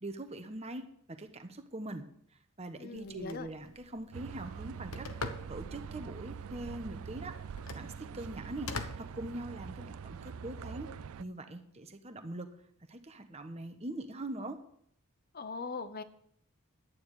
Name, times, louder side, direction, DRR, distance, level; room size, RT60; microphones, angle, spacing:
voice 1, 0.0-0.8 1.1-2.0 2.6-5.1 5.5-7.3 7.7-10.9 11.2-12.5 12.9-14.6, right 1 dB, 30° right, 7 dB, 1.1 m, -42 dB
voice 2, 2.8-3.5 15.3-16.0, left 4 dB, 45° left, 12 dB, 0.8 m, -40 dB
Telephone, 2.9-9.9, left 3 dB, 70° left, 1.1 m, -46 dB
sound 1, 4.1-11.2, right 6 dB, 70° right, 0.4 m, -44 dB
11.5 x 9.6 x 4.9 m, 0.66 s
head